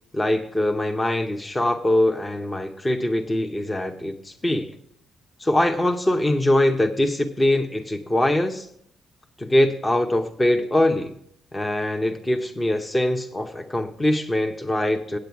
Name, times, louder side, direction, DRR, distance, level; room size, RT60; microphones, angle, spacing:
voice 1, 0.1-4.7 5.4-8.7 9.4-11.1 11.5-15.2, left 1 dB, 20° left, 5 dB, 0.8 m, -22 dB
8.5 x 7.8 x 5.9 m, 0.70 s
cardioid pair, 90°, 0 cm